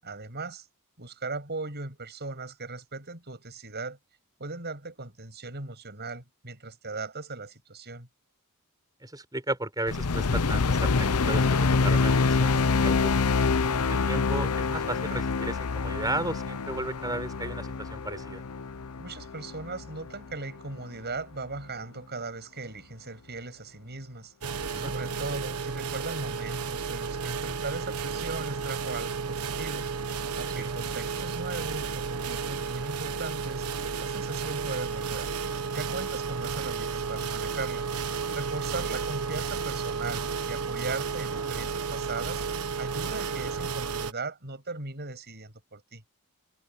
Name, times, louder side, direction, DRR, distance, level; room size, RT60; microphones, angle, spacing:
voice 1, 0.0-0.7 1.0-4.0 4.4-8.1 19.0-24.3 24.7-29.9 30.4-35.3 35.7-37.9 38.3-42.4 42.8-46.0, right 3 dB, 50° right, 7.1 m, -38 dB
voice 2, 9.0-13.1 13.8-18.4 24.6-24.9 30.6-30.7, right 2 dB, 15° right, 4.8 m, -35 dB
sound 1, 9.9-20.3, left 4 dB, 80° left, 0.8 m, -26 dB
sound 2, 24.4-44.1, right 5 dB, 85° right, 1.3 m, -32 dB
head